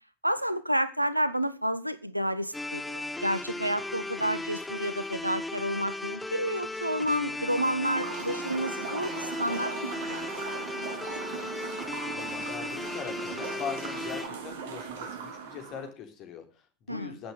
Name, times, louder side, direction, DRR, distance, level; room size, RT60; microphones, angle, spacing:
voice 1, 0.2-11.0 16.9-17.2, equal, 90° right, 1.0 m, -30 dB
sound 1, 2.5-14.3, left 2 dB, 5° left, 1.2 m, -36 dB
sound 2, 7.2-15.9, right 6 dB, 55° right, 2.6 m, -39 dB
voice 2, 12.1-17.3, left 7 dB, 35° left, 3.5 m, -41 dB
15.0 x 8.3 x 6.7 m
figure-of-eight pair, 90°, 0 cm